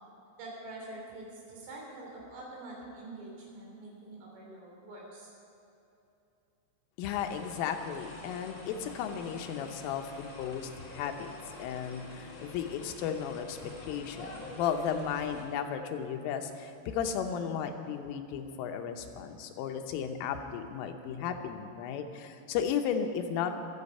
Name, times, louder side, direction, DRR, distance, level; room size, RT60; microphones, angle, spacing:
voice 1, 0.4-5.3, right 2 dB, 80° right, -2 dB, 5.8 m, -45 dB
voice 2, 7.0-11.3 11.6-23.5, left 7 dB, 85° left, 6 dB, 3.5 m, -34 dB
sound 1, 7.0-15.4, left 2 dB, 60° left, 1.2 m, -47 dB
23.5 x 8.2 x 5.5 m, 2.9 s
omnidirectional pair, 5.6 m